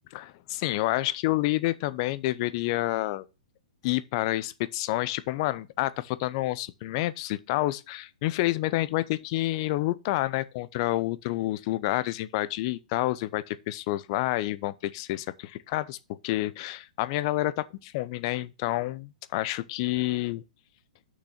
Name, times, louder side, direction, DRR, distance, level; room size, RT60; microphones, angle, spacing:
voice 1, 0.1-3.3 3.8-16.0 16.2-20.4, left 17 dB, 45° left, 0.7 m, -29 dB
6.3 x 6.1 x 5.8 m
hypercardioid pair, 120°, 4 cm